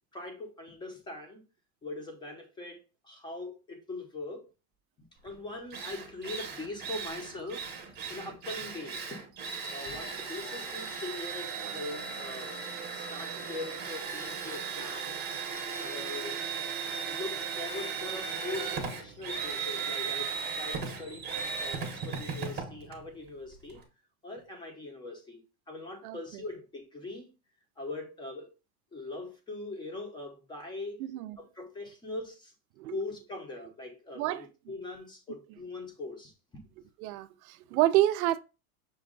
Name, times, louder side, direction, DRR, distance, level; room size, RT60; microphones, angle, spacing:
voice 1, 0.1-1.4 1.8-4.5 5.2-9.3 9.7-12.5 12.9-15.2 15.8-16.4 17.1-20.3 20.6-23.8 24.2-27.3 27.8-28.5 28.9-31.0 31.4-32.5 32.9-36.6, left 2 dB, 10° left, 0.7 m, -41 dB
Drill, 5.3-5.4 5.7-23.8, right 6 dB, 20° right, 0.9 m, -37 dB
voice 2, 26.0-26.4 31.0-31.4 32.8-33.0 34.1-34.5 37.0-38.4, right 15 dB, 70° right, 0.6 m, -28 dB
6.2 x 2.3 x 3.7 m
supercardioid pair, 150°, 44 cm